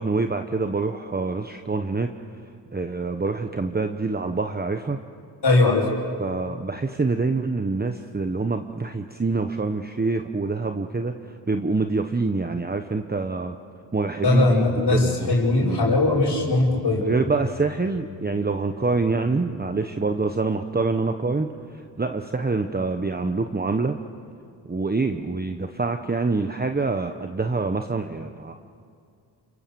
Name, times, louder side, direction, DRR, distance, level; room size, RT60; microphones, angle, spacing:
voice 1, 0.0-2.1 2.7-5.0 6.2-11.1 11.5-13.6 13.9-14.6 14.9-15.3 15.6-15.8 17.0-24.0 24.7-28.5, right 3 dB, 20° right, 6 dB, 1.1 m, -26 dB
voice 2, 5.4-5.9 14.2-17.0, left 2 dB, 55° left, -9 dB, 5.6 m, -20 dB
sound 1, 14.5-21.0, left 5 dB, 85° left, 3.1 m, -42 dB
29.0 x 23.0 x 7.1 m, 2.3 s
cardioid pair, 65°, 46 cm